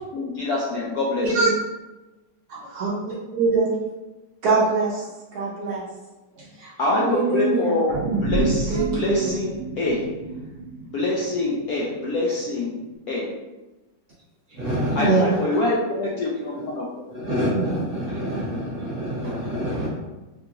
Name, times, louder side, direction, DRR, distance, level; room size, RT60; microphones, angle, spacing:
voice 1, 0.1-1.4 6.8-10.1 10.8-12.8 13.1-13.3 15.0-16.9, left 2 dB, 75° left, -5 dB, 0.8 m, -25 dB
voice 2, 2.5-3.8 4.4-5.8 6.4-7.8 8.7-9.3, right 3 dB, 65° right, -6 dB, 1.0 m, -24 dB
sound 1, 7.9-12.4 12.8-12.9, right 3 dB, 90° right, 1.4 m, -29 dB
voice 3, 14.5-15.4 17.1-19.9, right 1 dB, 35° right, -8 dB, 1.2 m, -25 dB
3.7 x 2.8 x 2.4 m, 1.1 s
omnidirectional pair, 2.0 m